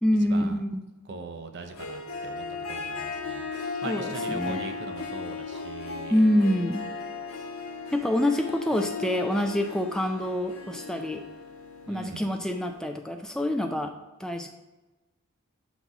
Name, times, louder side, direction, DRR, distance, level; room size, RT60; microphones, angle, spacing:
voice 1, 0.0-0.8 3.8-4.7 6.1-6.9 7.9-11.2 11.9-13.9 14.2-14.5, left 1 dB, 5° left, 4 dB, 0.3 m, -26 dB
voice 2, 1.0-3.4 3.8-6.2 11.9-12.2, right 3 dB, 55° right, 7 dB, 0.6 m, -41 dB
Harp, 1.6-12.8, left 4 dB, 80° left, 1.1 m, -36 dB
5.9 x 4.1 x 4.8 m, 1.1 s
head